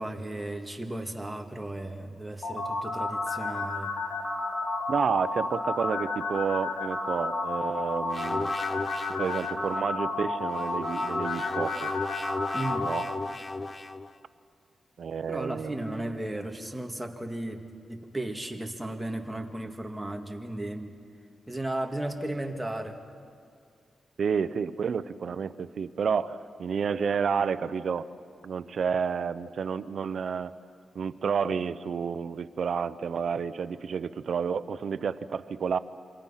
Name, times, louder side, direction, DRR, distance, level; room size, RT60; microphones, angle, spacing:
voice 1, 0.0-3.9 12.5-12.9 15.3-20.9 21.5-23.0, right 1 dB, 5° right, 3 dB, 2.1 m, -35 dB
sound 1, 2.4-13.0, left 3 dB, 60° left, 4.9 m, -31 dB
voice 2, 4.9-8.5 9.2-11.9 12.8-13.1 15.0-16.2 24.2-28.1 28.4-30.5 30.9-35.8, right 6 dB, 65° right, 14 dB, 0.8 m, -30 dB
sound 2, 8.1-9.7 10.5-14.1, left 3 dB, 25° left, 0.8 m, -35 dB
27.5 x 25.0 x 5.8 m, 2.3 s
wide cardioid pair, 105°, 0 cm